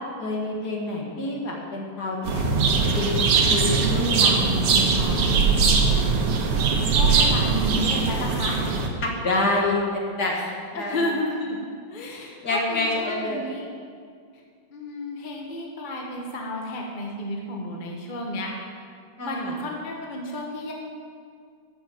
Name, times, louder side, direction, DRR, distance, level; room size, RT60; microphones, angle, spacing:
voice 1, 0.2-5.3 9.0-11.1 12.4-13.5 19.2-19.6, left 2 dB, 50° left, -1 dB, 2.1 m, -28 dB
sound 1, 2.2-8.9, right 5 dB, 90° right, 2.2 m, -21 dB
voice 2, 6.6-8.6 10.3-13.7 14.7-18.5 19.2-20.7, left 1 dB, 25° left, -1 dB, 1.3 m, -32 dB
13.0 x 7.0 x 7.7 m, 2.2 s
omnidirectional pair, 2.4 m